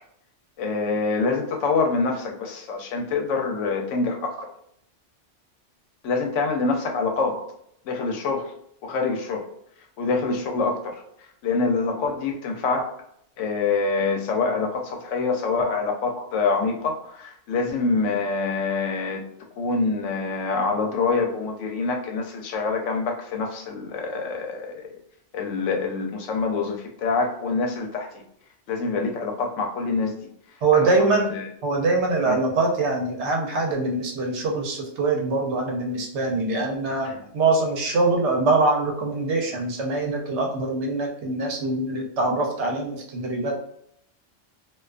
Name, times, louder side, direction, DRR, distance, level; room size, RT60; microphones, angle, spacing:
voice 1, 0.6-4.4 6.0-7.4 7.8-8.5 8.8-9.5 10.0-11.0 11.4-12.9 13.4-19.2 19.6-25.0 25.3-28.2 28.7-30.1 30.8-30.9 31.3-31.5 32.3-32.4 37.0-37.1, left 4 dB, 85° left, 3 dB, 0.9 m, -25 dB
voice 2, 30.6-31.3 31.6-43.6, right 3 dB, 70° right, 1 dB, 0.9 m, -23 dB
2.4 x 2.3 x 2.3 m, 0.70 s
omnidirectional pair, 1.2 m